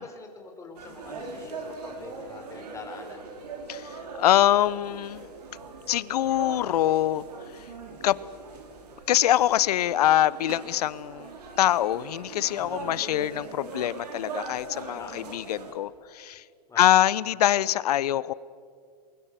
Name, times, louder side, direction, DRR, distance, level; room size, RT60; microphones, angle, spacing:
voice 1, 0.0-3.3 12.6-12.9 15.0-15.4 16.3-16.4 16.7-17.0, left 3 dB, 15° left, 3 dB, 4.3 m, -44 dB
sound 1, 0.7-15.7, right 3 dB, 75° right, 5.2 m, -41 dB
voice 2, 3.7-5.3 5.9-7.2 8.0-8.2 9.1-11.3 11.6-16.4 16.8-18.3, left 12 dB, 70° left, 20 dB, 0.8 m, -24 dB
28.0 x 22.0 x 6.8 m, 2.2 s
hypercardioid pair, 125°, 21 cm